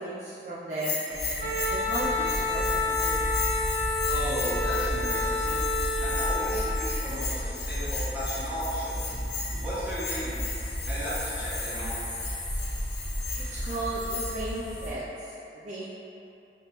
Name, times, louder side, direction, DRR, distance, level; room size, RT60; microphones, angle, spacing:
voice 1, 0.0-3.2 13.4-15.9, right 2 dB, 40° right, -8 dB, 0.4 m, -35 dB
Bell, 0.7-14.5, left 5 dB, 75° left, 0.7 m, -37 dB
sound 1, 1.1-14.9, equal, 30° left, 1.2 m, -33 dB
Wind instrument woodwind instrument, 1.4-6.6, left 3 dB, 75° right, 0.9 m, -29 dB
voice 2, 4.1-5.7 6.0-9.2 9.6-10.4 10.9-12.0, equal, 10° right, -13 dB, 1.3 m, -35 dB
5.1 x 2.9 x 2.9 m, 2.8 s
head